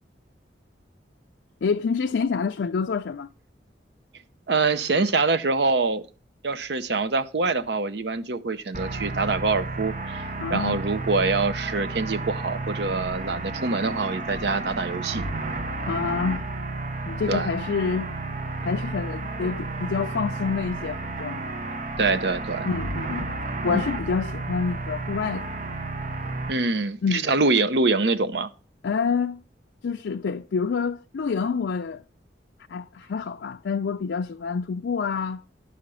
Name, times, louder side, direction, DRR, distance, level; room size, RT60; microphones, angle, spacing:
voice 1, 1.6-3.3 10.4-10.8 15.9-16.5 17.1-18.1 18.6-21.5 22.6-23.3 23.6-25.5 27.0-27.4 28.8-29.4 29.8-32.0 32.7-35.4, left 5 dB, 85° left, 0.4 m, -27 dB
voice 2, 4.5-6.0 6.4-15.2 17.3-17.5 22.0-22.7 23.7-23.8 26.5-28.5, right 3 dB, 70° right, 0.7 m, -25 dB
sound 1, 8.7-26.5, right 2 dB, 45° right, 1.0 m, -32 dB
11.0 x 5.1 x 6.9 m
head